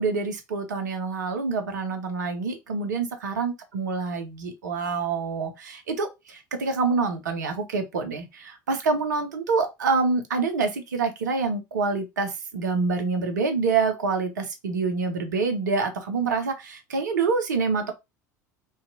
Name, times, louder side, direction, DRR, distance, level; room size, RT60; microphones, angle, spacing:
voice 1, 0.0-17.9, right 4 dB, 70° right, 0.6 m, -26 dB
2.6 x 2.2 x 2.6 m
figure-of-eight pair, 70°, 10 cm